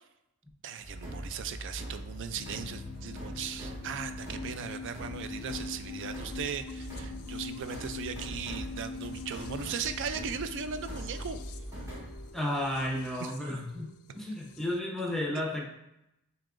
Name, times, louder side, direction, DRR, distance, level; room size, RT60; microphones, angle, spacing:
voice 1, 0.6-11.4 13.2-13.3, right 7 dB, 60° right, 10 dB, 0.4 m, -38 dB
sound 1, 0.8-12.3, equal, 15° right, 1.2 m, -43 dB
sound 2, 2.3-14.8, left 4 dB, 80° left, 0.4 m, -43 dB
voice 2, 12.3-15.6, left 1 dB, ahead, -2 dB, 0.7 m, -33 dB
7.2 x 2.9 x 2.5 m, 0.85 s
head